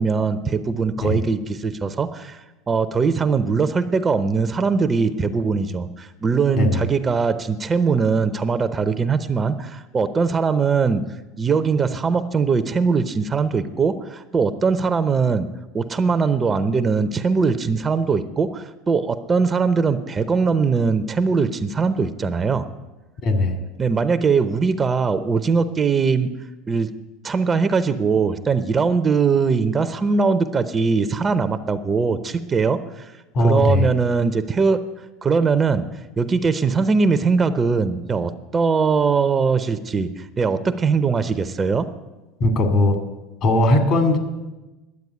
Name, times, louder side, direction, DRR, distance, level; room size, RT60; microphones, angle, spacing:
voice 1, 0.0-2.4 2.7-11.0 11.4-15.5 15.7-22.7 23.8-26.3 26.7-26.9 27.2-33.1 33.4-34.8 35.2-35.8 36.2-41.9, right 5 dB, 25° right, 11 dB, 0.7 m, -21 dB
voice 2, 23.2-23.6 33.3-33.9 42.4-42.9 43.4-44.2, left 2 dB, 50° left, 5 dB, 2.5 m, -18 dB
11.0 x 7.8 x 9.7 m, 1.1 s
supercardioid pair, 100°, 0 cm